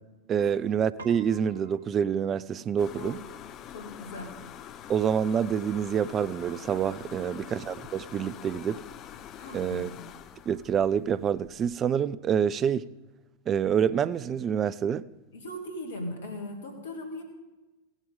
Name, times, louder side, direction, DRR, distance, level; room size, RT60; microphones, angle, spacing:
voice 1, 0.3-3.2 4.9-8.8 9.5-9.9 10.5-12.9 13.5-15.0, right 8 dB, 25° right, 0.4 m, -27 dB
Piano, 1.0-10.6, right 3 dB, 70° right, 1.1 m, -56 dB
sound 1, 2.8-11.8, left 10 dB, 30° left, 0.5 m, -45 dB
voice 2, 3.7-4.3 7.1-7.4 9.3-9.9 15.3-17.2, left 1 dB, 60° left, 2.3 m, -39 dB
16.0 x 7.3 x 5.3 m
figure-of-eight pair, 90°, 0 cm